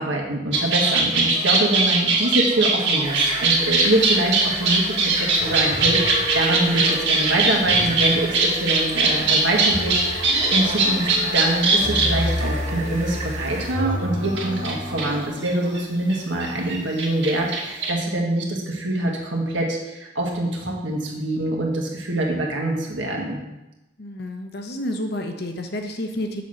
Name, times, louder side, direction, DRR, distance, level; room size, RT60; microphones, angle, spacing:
voice 1, 0.0-23.4, right 1 dB, 85° right, -1 dB, 1.6 m, -25 dB
sound 1, 0.5-12.7 13.8-13.9 14.4-15.8 16.1-16.2 16.4-17.9, right 3 dB, 70° right, 1.7 m, -21 dB
sound 2, 3.0-13.7, right 2 dB, 35° right, 1.6 m, -34 dB
sound 3, 5.4-15.3, equal, 85° left, 2.5 m, -31 dB
voice 2, 24.0-26.4, left 1 dB, 55° left, 5 dB, 0.9 m, -30 dB
7.0 x 4.4 x 6.4 m, 0.99 s
head